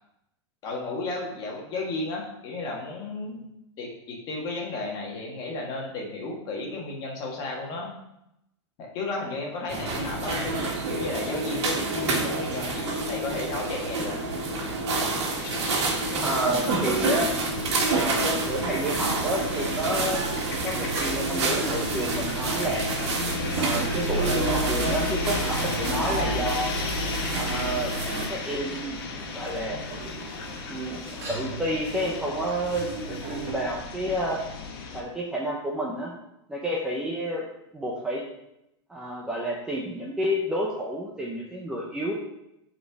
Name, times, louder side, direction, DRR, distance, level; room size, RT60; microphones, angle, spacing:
voice 1, 0.6-3.4 3.8-7.9 8.8-14.1, left 2 dB, 25° left, -2 dB, 1.7 m, -33 dB
sound 1, 9.7-28.3, right 2 dB, 70° right, 2.0 m, -28 dB
sound 2, 15.4-35.0, left 4 dB, 55° left, 1.2 m, -35 dB
voice 2, 16.2-17.3 17.9-22.9 23.5-26.7 27.3-27.9 28.3-29.0 29.3-29.8 30.7-31.0 31.3-34.4 34.9-36.1 36.5-37.4 37.7-38.2 38.9-42.1, right 1 dB, 5° right, -4 dB, 0.6 m, -30 dB
sound 3, 18.1-33.5, right 3 dB, 35° right, 2.3 m, -39 dB
8.8 x 4.4 x 4.7 m, 0.85 s
supercardioid pair, 165°, 15 cm